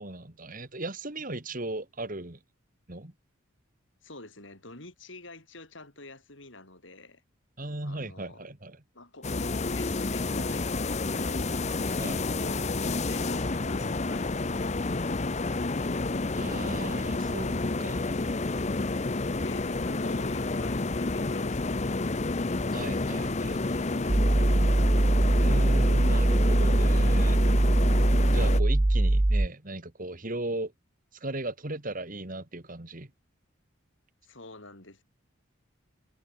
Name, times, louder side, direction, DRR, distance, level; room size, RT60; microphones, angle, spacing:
voice 1, 0.0-2.4 2.9-3.1 7.6-8.8 12.0-12.2 16.3-18.5 22.7-24.5 25.4-27.4 28.3-30.7 31.2-33.1, right 2 dB, 40° right, 2.2 m, -37 dB
voice 2, 4.0-7.2 7.8-8.4 8.9-11.5 12.0-15.4 18.8-22.2 34.2-35.0, left 2 dB, 65° left, 6.2 m, -48 dB
sound 1, 9.2-28.6, left 3 dB, 35° left, 0.7 m, -30 dB
sound 2, 24.1-29.5, right 1 dB, 15° right, 0.4 m, -22 dB
head